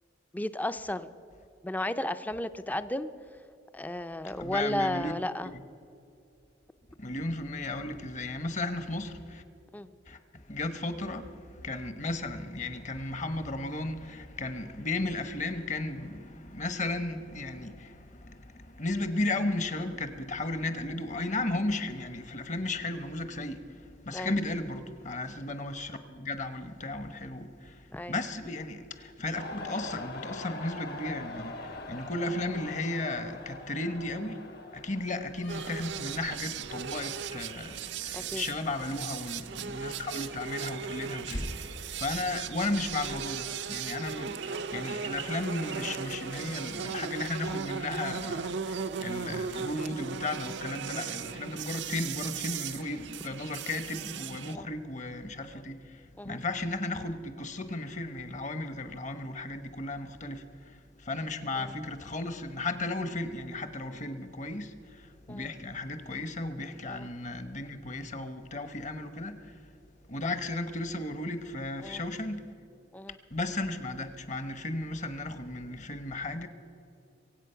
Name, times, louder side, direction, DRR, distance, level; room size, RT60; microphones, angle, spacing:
voice 1, 0.3-1.1 1.6-3.1 3.7-5.5 9.7-9.9 24.1-24.3 27.9-28.1 38.1-38.4 54.5-54.7 56.2-56.4 61.6-61.7 65.3-65.5 66.9-67.1 71.8-72.0 72.9-73.2, left 1 dB, 10° left, 0.4 m, -33 dB
voice 2, 4.4-5.1 5.4-5.6 7.0-9.4 10.1-34.4 34.7-69.6 70.1-72.5 73.3-76.5, left 2 dB, 40° left, 1.0 m, -35 dB
sound 1, 29.3-35.2, left 2 dB, 55° left, 1.2 m, -42 dB
Slam, 35.2-43.6, left 1 dB, 75° left, 3.1 m, -47 dB
sound 2, 35.5-54.5, right 6 dB, 65° right, 0.5 m, -37 dB
23.5 x 8.4 x 5.6 m
head